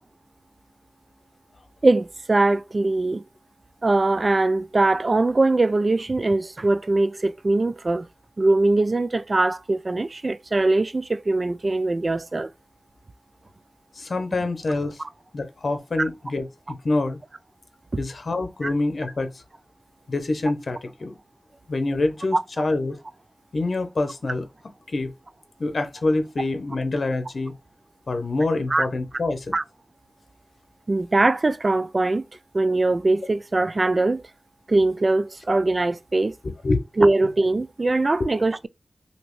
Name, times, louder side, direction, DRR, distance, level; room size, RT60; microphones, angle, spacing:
voice 1, 1.8-3.2 3.8-8.1 8.4-12.5 15.0-15.1 16.0-16.1 18.6-18.7 22.3-22.4 28.7-28.9 29.5-29.6 30.9-32.2 32.5-34.2 34.7-36.4 37.0-38.7, right 2 dB, 45° right, 0.3 m, -21 dB
voice 2, 13.9-15.0 15.3-17.2 18.0-19.4 20.1-21.2 21.7-23.0 23.5-24.5 24.9-25.1 25.6-27.5 28.1-29.5 36.4-36.8 38.2-38.3, left 2 dB, 65° left, 0.7 m, -26 dB
3.0 x 2.8 x 3.0 m
cardioid pair, 50°, 0 cm